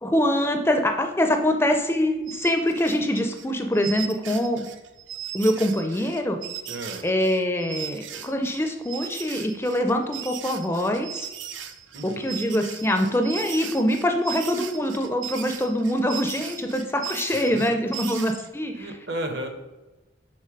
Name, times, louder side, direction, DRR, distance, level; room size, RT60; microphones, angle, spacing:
voice 1, 0.0-4.7 5.3-6.4 7.0-11.3 12.0-18.9, equal, 10° left, 5 dB, 0.4 m, -24 dB
sound 1, 2.3-18.5, right 9 dB, 80° right, 0.6 m, -38 dB
voice 2, 6.7-7.0 11.9-12.4 17.5-17.7 18.8-19.5, right 1 dB, 60° right, 5 dB, 1.0 m, -33 dB
6.4 x 3.9 x 5.2 m, 1.1 s
head